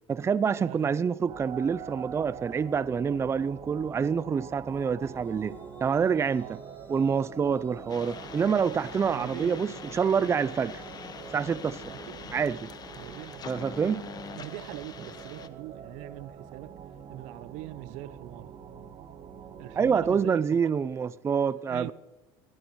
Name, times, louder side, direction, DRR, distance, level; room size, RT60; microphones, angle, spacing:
voice 1, 0.1-6.6 6.9-10.8 11.3-11.8 12.3-12.7 13.5-14.0 19.8-21.9, right 6 dB, 20° right, 0.5 m, -27 dB
sound 1, 1.3-20.2, right 7 dB, 45° right, 1.6 m, -45 dB
sound 2, 4.7-13.6, left 1 dB, 15° left, 3.0 m, -53 dB
sound 3, 7.9-15.5, left 6 dB, 35° left, 1.2 m, -44 dB
voice 2, 9.1-9.6 11.9-12.5 12.9-13.9 14.3-16.8 17.1-18.6 19.6-20.7 21.7-21.9, right 16 dB, 70° right, 0.7 m, -42 dB
23.0 x 17.5 x 3.2 m
supercardioid pair, 105°, 12 cm